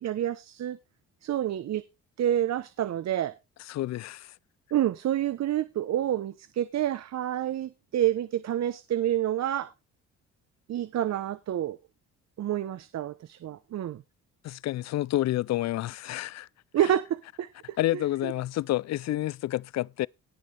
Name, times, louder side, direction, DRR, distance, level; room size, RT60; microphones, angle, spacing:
voice 1, 0.0-0.8 1.2-1.8 2.2-3.3 4.7-9.7 10.7-11.8 12.4-14.0 16.7-18.3, right 11 dB, 60° right, 0.9 m, -28 dB
voice 2, 3.7-4.3 14.4-16.5 17.8-20.1, left 15 dB, 60° left, 0.5 m, -29 dB
18.0 x 6.3 x 3.4 m
cardioid pair, 90°, 30 cm